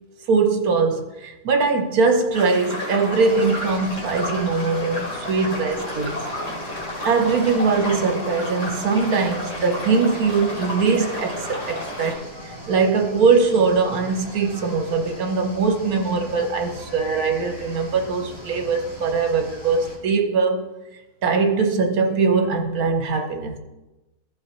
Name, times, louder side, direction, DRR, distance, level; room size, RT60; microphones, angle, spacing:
voice 1, 0.3-6.2 7.0-20.7 21.2-23.6, right 4 dB, 70° right, 1.4 m, -21 dB
sound 1, 2.3-12.1, left 1 dB, 50° left, 3.5 m, -31 dB
sound 2, 3.1-20.0, equal, 20° left, 3.2 m, -40 dB
15.5 x 5.6 x 3.1 m
omnidirectional pair, 1.6 m